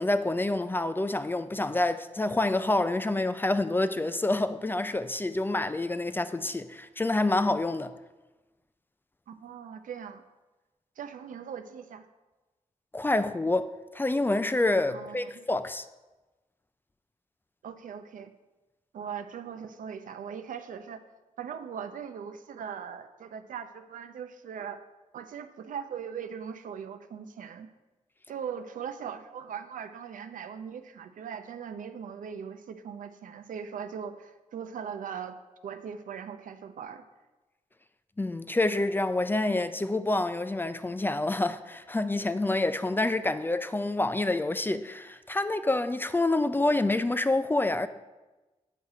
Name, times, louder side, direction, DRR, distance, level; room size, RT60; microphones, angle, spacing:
voice 1, 0.0-7.9 12.9-15.9 38.2-47.9, left 2 dB, 15° left, 0.3 m, -27 dB
voice 2, 9.3-10.2 11.0-12.1 14.9-15.4 17.6-18.3 18.9-21.0 21.4-24.8 25.1-27.7 28.3-35.4 35.6-37.0, right 7 dB, 90° right, 0.6 m, -40 dB
8.2 x 5.7 x 4.8 m
wide cardioid pair, 110°, 13 cm